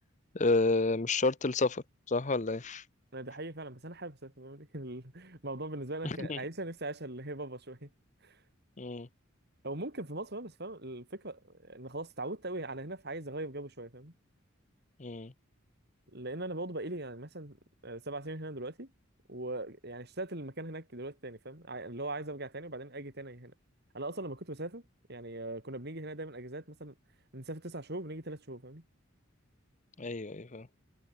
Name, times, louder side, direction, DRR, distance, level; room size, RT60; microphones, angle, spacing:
voice 1, 0.3-2.8 6.0-6.4 8.8-9.1 15.0-15.3 30.0-30.7, left 3 dB, 35° left, 0.9 m, -30 dB
voice 2, 3.1-7.9 8.2-8.4 9.6-14.1 16.1-17.6 17.8-18.9 19.3-23.5 23.9-24.8 25.1-26.9 27.3-28.8, right 2 dB, 55° right, 5.4 m, -40 dB
head